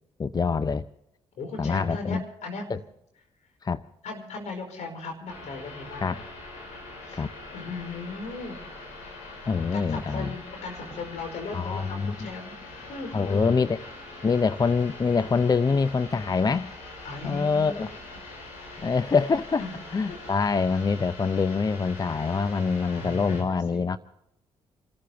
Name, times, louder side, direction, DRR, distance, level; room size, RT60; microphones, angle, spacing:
voice 1, 0.2-0.8 1.6-2.2 2.7-2.8 3.6-3.8 6.0-6.2 7.1-7.3 9.5-10.3 11.5-12.3 13.1-13.8 14.2-16.7 17.2-17.9 18.8-19.6 19.9-24.0, left 5 dB, 35° left, 0.6 m, -25 dB
voice 2, 1.4-2.8 4.0-6.2 6.9-7.2 7.5-8.6 9.7-13.6 17.0-17.9 18.7-18.9 19.6-19.7 20.1-20.2 22.7-23.9, left 3 dB, 70° left, 4.9 m, -37 dB
sound 1, 5.3-23.4, left 2 dB, 90° left, 4.4 m, -43 dB
28.5 x 14.0 x 3.4 m
supercardioid pair, 55°, 12 cm